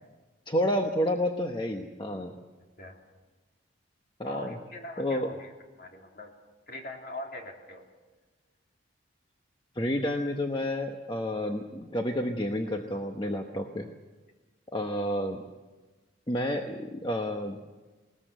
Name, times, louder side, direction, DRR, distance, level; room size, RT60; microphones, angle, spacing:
voice 1, 0.5-2.4 4.2-4.6 5.0-5.3 9.7-13.9 14.7-15.4 16.3-17.7, left 1 dB, 25° left, 4 dB, 1.0 m, -30 dB
voice 2, 4.2-5.5 5.8-6.3 6.7-7.8, left 1 dB, 50° left, 1 dB, 3.2 m, -41 dB
20.5 x 20.0 x 8.0 m, 1.2 s
head